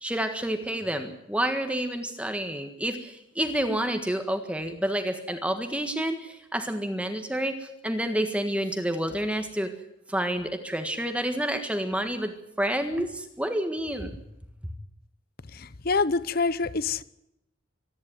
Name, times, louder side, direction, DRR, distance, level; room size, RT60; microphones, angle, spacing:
voice 1, 0.0-9.7 10.1-14.1, right 1 dB, 5° right, 1.6 m, -29 dB
voice 2, 15.5-17.0, left 4 dB, 45° left, 0.8 m, -26 dB
25.5 x 11.0 x 9.3 m
head